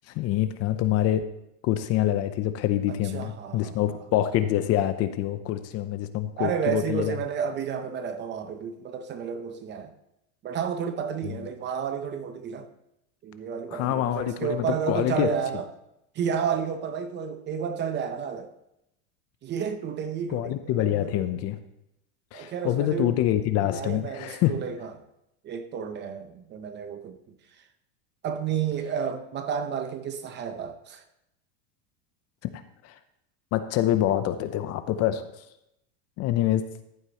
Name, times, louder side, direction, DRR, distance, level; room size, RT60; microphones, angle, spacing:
voice 1, 0.1-1.2 1.6-7.2 11.2-11.5 13.7-15.3 20.3-21.6 22.3-24.5 32.4-32.5 32.8-32.9 33.5-35.2 36.2-36.6, left 12 dB, 40° left, 0.6 m, -26 dB
voice 2, 2.9-3.8 6.4-9.9 10.4-12.7 13.2-15.7 16.1-18.5 19.4-21.3 22.3-23.2 23.7-24.9 25.4-27.2 28.2-31.0, right 7 dB, 30° right, 0.7 m, -31 dB
14.0 x 8.1 x 2.9 m
supercardioid pair, 150°, 39 cm